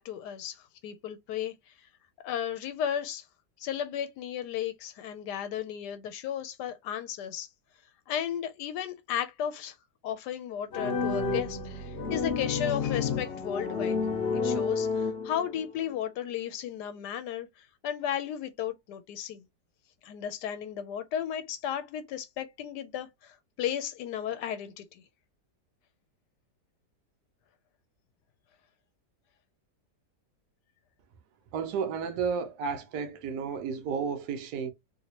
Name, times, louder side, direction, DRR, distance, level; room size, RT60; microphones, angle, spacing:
voice 1, 0.0-1.9 2.2-3.2 3.6-7.5 8.1-9.8 10.0-14.0 14.3-19.4 20.0-25.0, left 9 dB, 90° left, 1.2 m, -34 dB
sound 1, 10.7-15.7, left 5 dB, 50° left, 0.8 m, -30 dB
voice 2, 31.5-34.7, right 6 dB, 80° right, 1.2 m, -32 dB
3.1 x 2.8 x 2.9 m
omnidirectional pair, 1.7 m